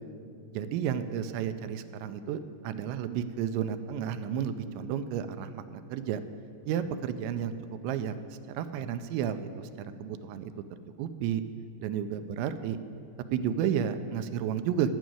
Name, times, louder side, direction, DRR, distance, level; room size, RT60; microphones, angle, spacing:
voice 1, 0.5-6.2 6.7-7.5 7.8-8.1 8.5-10.5 11.0-11.4 11.8-12.8 13.3-14.9, right 9 dB, 85° right, 10 dB, 2.9 m, -32 dB
13.0 x 6.2 x 9.2 m, 2.6 s
omnidirectional pair, 5.1 m